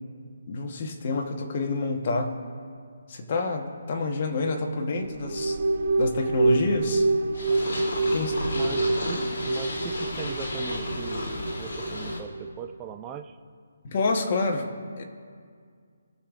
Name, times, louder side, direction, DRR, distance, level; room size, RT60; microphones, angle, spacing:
voice 1, 0.5-2.4 3.1-5.6 6.0-7.1 8.1-8.4 13.8-14.7 15.0-15.1, left 3 dB, 40° left, 3 dB, 1.1 m, -28 dB
sound 1, 5.0-12.6, right 2 dB, 50° right, 1.2 m, -27 dB
Purr, 7.3-12.2, left 2 dB, 65° left, 2.3 m, -33 dB
voice 2, 8.5-13.4, right 8 dB, 15° right, 7 dB, 0.4 m, -40 dB
19.5 x 6.6 x 2.5 m, 2.1 s
hypercardioid pair, 165°, 0 cm